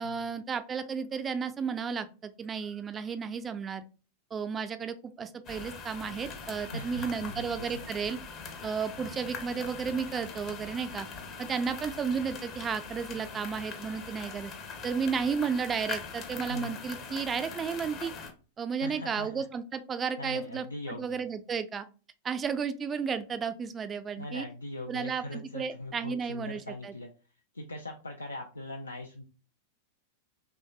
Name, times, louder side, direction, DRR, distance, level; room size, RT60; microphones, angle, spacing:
voice 1, 0.0-3.8 4.3-8.2 8.6-11.1 11.4-14.5 14.8-18.1 18.6-21.9 22.2-24.5 24.9-26.9, right 6 dB, 20° right, 10 dB, 0.3 m, -33 dB
sound 1, 5.4-18.3, left 5 dB, 35° left, 0.6 m, -42 dB
voice 2, 6.7-7.9 16.5-16.8 18.8-19.4 20.2-21.2 24.2-27.1 27.5-29.2, left 1 dB, 80° left, 2 dB, 0.3 m, -41 dB
3.1 x 2.7 x 2.3 m, 0.35 s
figure-of-eight pair, 90°, 0 cm